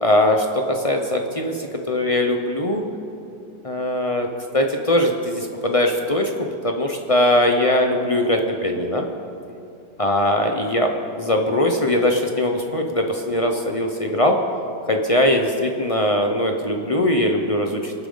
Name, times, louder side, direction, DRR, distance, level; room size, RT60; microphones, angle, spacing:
voice 1, 0.0-2.8 3.6-4.3 4.5-9.1 10.0-10.9 11.2-14.4 14.9-17.9, left 1 dB, 40° left, 3 dB, 0.4 m, -21 dB
26.0 x 8.7 x 3.9 m, 2.7 s
omnidirectional pair, 1.9 m